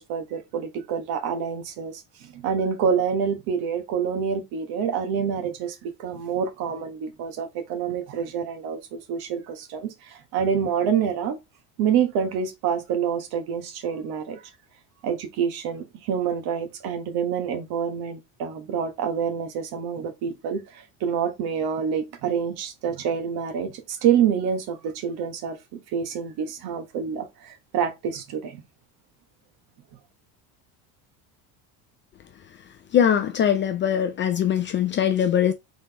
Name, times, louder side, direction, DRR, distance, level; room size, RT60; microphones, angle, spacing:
voice 1, 0.0-11.4 11.8-14.4 15.0-28.6, right 7 dB, 60° right, 1.3 m, -27 dB
voice 2, 32.9-35.5, left 9 dB, 30° left, 0.3 m, -21 dB
4.0 x 3.7 x 3.4 m
cardioid pair, 135°, 42 cm